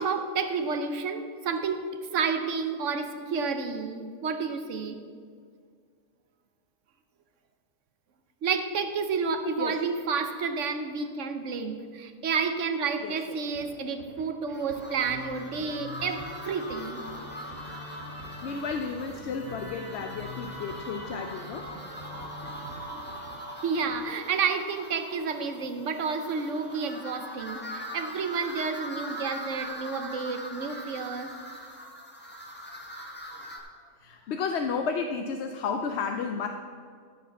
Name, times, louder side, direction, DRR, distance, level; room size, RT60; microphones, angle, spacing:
voice 1, 0.0-5.0 8.4-17.0 22.4-23.0 23.6-31.3, right 5 dB, 70° right, 8 dB, 1.1 m, -30 dB
voice 2, 13.0-13.4 17.4-21.9 22.4-22.5 31.5-31.9 34.0-36.5, left 5 dB, 65° left, 5 dB, 0.8 m, -33 dB
sound 1, 13.4-23.4, right 2 dB, 90° right, 3.4 m, -49 dB
sound 2, 14.5-33.6, equal, 10° left, 1.2 m, -42 dB
Musical instrument, 14.9-24.2, left 2 dB, 30° left, 2.1 m, -45 dB
13.5 x 4.7 x 7.1 m, 2.1 s
omnidirectional pair, 1.3 m